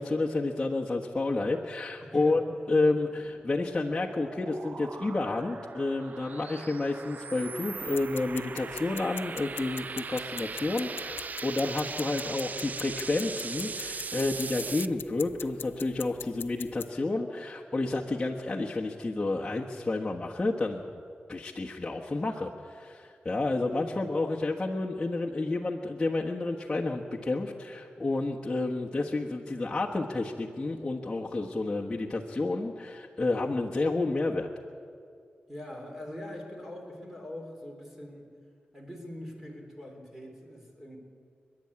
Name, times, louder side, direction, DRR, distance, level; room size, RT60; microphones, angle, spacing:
voice 1, 0.0-2.4 2.7-20.8 21.3-34.5, left 2 dB, 25° left, -3 dB, 1.3 m, -30 dB
voice 2, 2.0-2.4 23.3-24.0 35.5-38.3 38.7-41.0, left 1 dB, 5° right, 1 dB, 3.8 m, -43 dB
sound 1, 3.1-14.9, right 5 dB, 50° right, 0.4 m, -40 dB
sound 2, 7.8-16.9, left 7 dB, 90° left, 0.5 m, -43 dB
28.5 x 11.0 x 8.7 m, 2.2 s
wide cardioid pair, 90°, 4 cm